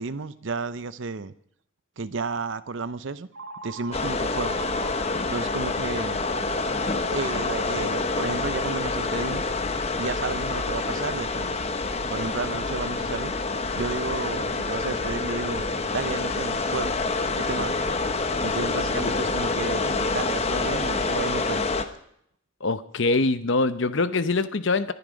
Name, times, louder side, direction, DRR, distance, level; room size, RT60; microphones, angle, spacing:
voice 1, 0.0-1.3 2.0-3.3 3.6-4.6 5.3-6.2 7.1-9.4 9.9-11.6 12.1-13.3 13.7-16.9 17.4-17.8 18.4-21.8, right 4 dB, 60° right, 13 dB, 0.6 m, -32 dB
Telephone, 3.3-5.3 6.2-9.2, right 4 dB, 80° right, 1.4 m, -40 dB
sound 1, 3.9-21.8, left 3 dB, 30° left, 0.9 m, -27 dB
voice 2, 22.6-24.9, left 3 dB, 55° left, 13 dB, 0.8 m, -23 dB
22.0 x 11.0 x 5.1 m, 0.70 s
head